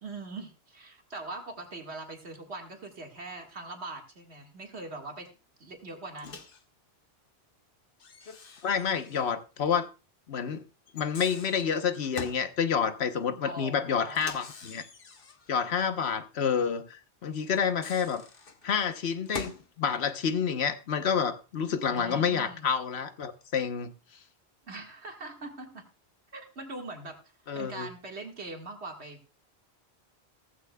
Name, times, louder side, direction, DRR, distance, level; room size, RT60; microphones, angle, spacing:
voice 1, 0.0-5.3 5.6-6.4 13.4-14.2 21.9-22.6 24.6-25.9 26.3-27.2 27.5-29.2, right 2 dB, 85° right, 2.1 m, -42 dB
Microwave oven, 6.2-6.6 8.0-9.4 9.7-9.8 10.9-12.5 14.1-15.5 17.5-19.7, left 5 dB, 60° left, 1.2 m, -44 dB
voice 2, 8.6-9.9 10.3-10.6 10.9-14.8 15.5-18.2 18.6-23.9 27.5-27.9, left 7 dB, 80° left, 1.2 m, -29 dB
15.5 x 15.0 x 2.3 m
omnidirectional pair, 1.1 m